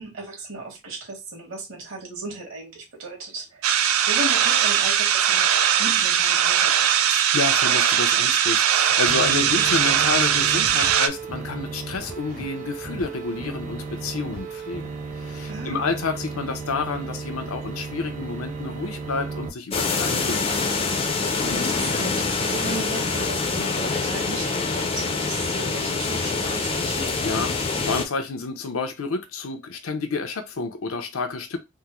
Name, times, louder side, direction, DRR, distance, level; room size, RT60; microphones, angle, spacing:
voice 1, 0.0-3.7 4.1-5.5 5.8-7.0 15.5-16.0 21.5-27.1, right 2 dB, 70° right, 1.5 m, -36 dB
sound 1, 3.6-11.1, right 9 dB, 85° right, 0.4 m, -20 dB
voice 2, 7.1-14.9 15.1-20.8 27.2-31.6, left 4 dB, 90° left, 0.6 m, -29 dB
sound 2, 9.1-19.5, right 4 dB, 35° right, 0.7 m, -35 dB
sound 3, 19.7-28.0, left 4 dB, 25° left, 0.4 m, -25 dB
3.5 x 2.0 x 2.9 m
head